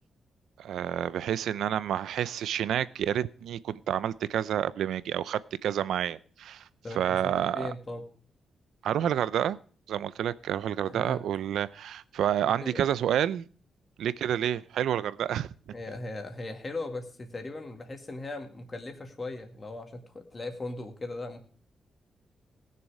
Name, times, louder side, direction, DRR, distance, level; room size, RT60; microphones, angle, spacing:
voice 1, 0.6-6.6 7.0-7.7 8.8-9.6 9.9-13.4 14.0-15.5, right 10 dB, 90° right, 0.6 m, -29 dB
voice 2, 6.8-8.0 10.8-11.2 12.6-12.8 15.7-21.4, left 2 dB, 25° left, 2.1 m, -38 dB
19.0 x 6.9 x 4.9 m
wide cardioid pair, 160°, 0 cm